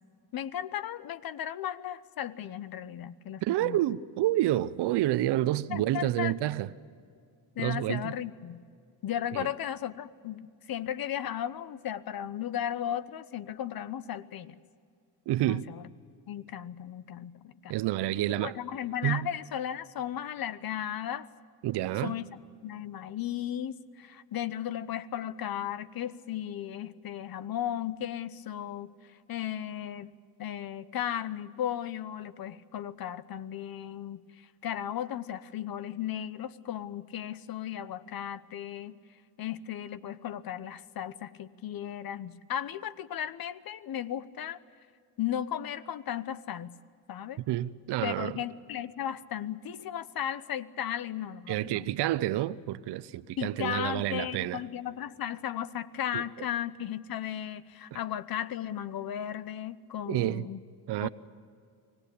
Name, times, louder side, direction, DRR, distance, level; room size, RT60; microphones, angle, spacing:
voice 1, 0.3-3.8 5.7-6.3 7.6-8.6 9.0-14.6 15.4-15.8 16.3-17.7 18.4-21.3 22.0-22.3 22.6-28.9 29.3-30.1 30.4-34.2 34.6-39.0 39.4-44.6 45.2-46.7 47.1-47.4 48.0-51.9 53.4-60.6 61.0-61.1, left 10 dB, 50° left, 1.0 m, -35 dB
voice 2, 3.4-6.7 7.6-8.1 9.3-9.5 15.3-15.7 17.7-18.6 19.0-19.3 21.6-22.2 47.5-48.4 51.5-54.6 56.1-56.2 57.9-58.0 60.1-60.5 60.9-61.1, right 14 dB, 60° right, 0.8 m, -29 dB
24.5 x 18.0 x 8.6 m
supercardioid pair, 75°, 45 cm